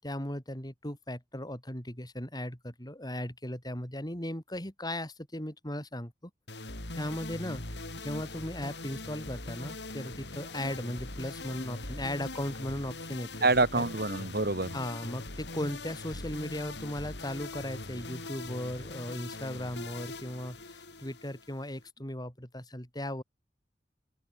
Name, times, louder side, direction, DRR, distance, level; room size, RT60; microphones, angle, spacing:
voice 1, 0.0-6.3 6.9-13.5 13.8-13.9 14.7-23.2, left 1 dB, 25° left, 5.9 m, -37 dB
sound 1, 6.5-21.9, left 2 dB, 80° left, 7.0 m, -42 dB
voice 2, 13.4-14.7, right 3 dB, 60° right, 4.5 m, -26 dB
open air
head